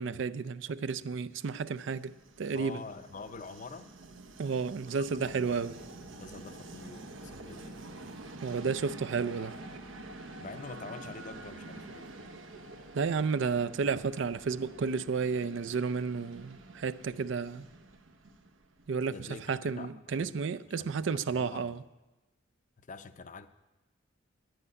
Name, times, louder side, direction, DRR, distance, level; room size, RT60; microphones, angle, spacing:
voice 1, 0.0-2.8 4.4-5.7 8.4-9.6 12.9-17.7 18.9-21.8, right 5 dB, 70° right, 0.4 m, -32 dB
Train, 1.7-19.4, right 2 dB, 85° right, 0.9 m, -48 dB
voice 2, 2.5-3.9 5.0-5.6 6.2-7.8 10.4-12.1 19.1-20.3 20.7-21.8 22.8-23.5, left 4 dB, 40° left, 0.5 m, -46 dB
9.7 x 8.0 x 9.6 m
head